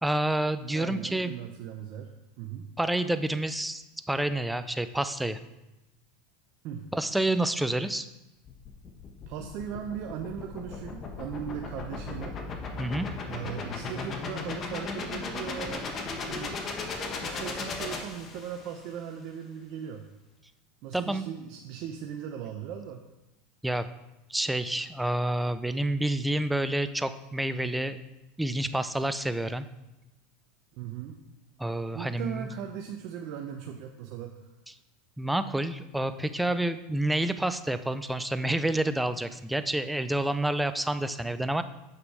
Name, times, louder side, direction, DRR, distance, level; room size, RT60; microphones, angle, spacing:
voice 1, 0.0-1.4 2.8-5.4 6.7-8.1 12.8-13.1 20.9-21.2 23.6-23.9 24.3-28.0 28.4-29.6 31.6-32.5 35.2-41.6, right 1 dB, 5° right, 11 dB, 0.5 m, -28 dB
voice 2, 0.7-2.1 2.4-2.7 6.6-6.9 9.3-12.4 13.3-15.9 16.2-16.6 17.1-20.1 20.8-23.0 30.8-31.2 31.9-34.4, right 9 dB, 60° right, 3 dB, 0.7 m, -38 dB
sound 1, 8.4-18.8, left 4 dB, 35° left, 1.3 m, -36 dB
7.3 x 6.7 x 4.8 m, 0.97 s
hypercardioid pair, 100°, 0 cm